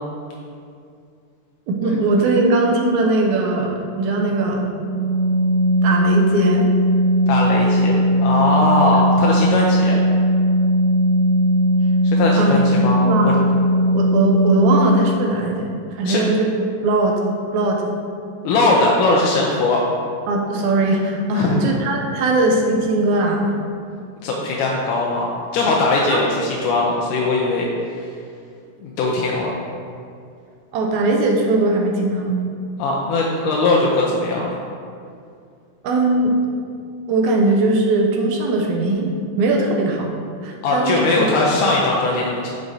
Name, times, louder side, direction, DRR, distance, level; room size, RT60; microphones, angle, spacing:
voice 1, 1.7-4.7 5.8-6.7 12.4-12.6 13.0-13.4 13.8-15.7 16.0-16.5 16.8-17.2 17.5-17.9 20.3-23.5 26.1-26.2 30.7-32.4 35.8-36.3 37.1-39.1 39.4-40.1 40.4-41.3, right 2 dB, 80° right, 0 dB, 2.0 m, -19 dB
Organ, 4.7-15.3, equal, 35° left, 1.1 m, -18 dB
voice 2, 7.3-10.0 12.0-13.0 16.1-16.2 18.4-19.8 21.3-21.7 24.2-27.7 28.8-29.5 32.8-34.6 40.6-42.5, left 2 dB, 90° left, -2 dB, 2.2 m, -20 dB
8.9 x 4.7 x 2.7 m, 2.3 s
omnidirectional pair, 3.5 m